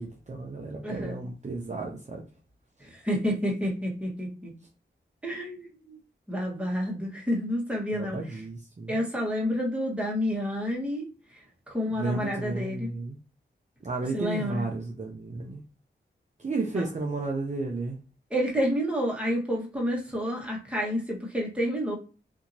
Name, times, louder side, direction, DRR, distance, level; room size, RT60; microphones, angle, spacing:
voice 1, 0.0-2.3 7.9-9.0 11.9-13.2 13.8-15.6 16.4-18.0, right 3 dB, 35° right, 0.6 m, -33 dB
voice 2, 0.8-1.2 2.9-4.5 5.2-6.0 6.3-8.4 8.9-11.1 11.7-12.9 14.1-14.7 16.7-16.8 18.3-21.9, equal, 5° right, 1.2 m, -29 dB
2.7 x 2.7 x 2.6 m
cardioid pair, 45°, 19 cm